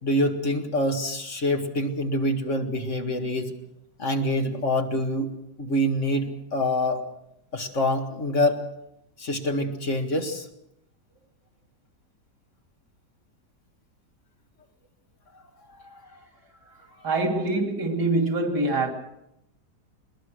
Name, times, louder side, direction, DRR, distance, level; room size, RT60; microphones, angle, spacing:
voice 1, 0.0-3.5 4.0-5.3 5.6-7.0 7.5-8.7 9.2-10.5 15.8-16.2, left 1 dB, 45° left, 2.1 m, -26 dB
voice 2, 17.0-18.9, right 2 dB, 90° right, 3.2 m, -24 dB
21.0 x 21.0 x 6.4 m
omnidirectional pair, 1.8 m